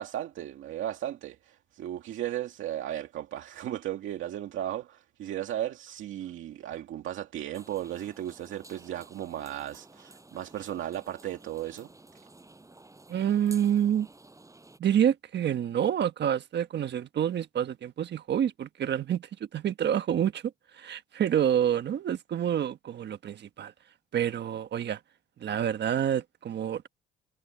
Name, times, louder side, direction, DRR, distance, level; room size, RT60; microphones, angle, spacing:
voice 1, 0.0-11.9, right 12 dB, 80° right, 2.2 m, -35 dB
sound 1, 7.5-14.8, right 2 dB, 15° right, 7.8 m, -53 dB
voice 2, 13.1-14.1 14.8-23.7 24.1-25.0 25.4-26.9, right 9 dB, 60° right, 1.3 m, -28 dB
cardioid pair, 90°, 20 cm